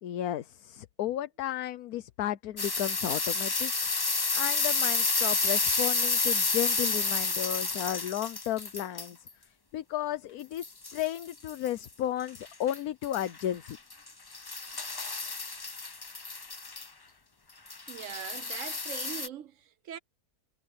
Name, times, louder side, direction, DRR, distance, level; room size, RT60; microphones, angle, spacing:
voice 1, 0.0-3.7 4.3-10.6 10.9-13.8, left 12 dB, 70° left, 1.2 m, -33 dB
sound 1, 2.6-9.3 10.6-11.9 12.3-12.8 13.0-16.9 17.7-19.3, left 3 dB, 30° left, 0.4 m, -30 dB
voice 2, 17.9-20.0, right 9 dB, 60° right, 1.0 m, -41 dB
omnidirectional pair, 1.7 m